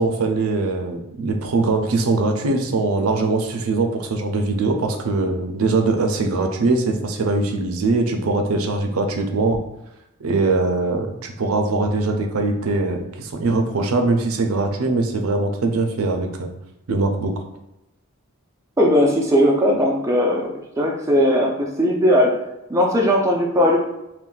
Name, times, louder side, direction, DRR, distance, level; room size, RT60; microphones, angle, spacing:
voice 1, 0.0-9.6 10.2-16.5 16.9-17.3, right 3 dB, 80° right, 4 dB, 0.5 m, -21 dB
voice 2, 18.8-20.5 20.8-22.4 22.7-23.8, equal, 15° right, -2 dB, 0.5 m, -18 dB
2.5 x 2.2 x 3.8 m, 0.88 s
head